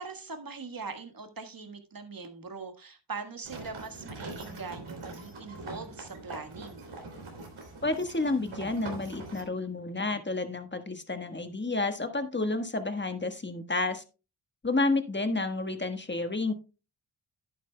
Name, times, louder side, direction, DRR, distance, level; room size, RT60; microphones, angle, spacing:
voice 1, 0.0-6.9, right 4 dB, 45° right, 7 dB, 1.6 m, -41 dB
sound 1, 3.4-9.4, right 2 dB, 85° right, 3.0 m, -43 dB
voice 2, 7.8-14.0 14.6-16.5, left 2 dB, 25° left, 8 dB, 1.4 m, -30 dB
11.0 x 9.5 x 2.2 m, 0.31 s
cardioid pair, 55°, 47 cm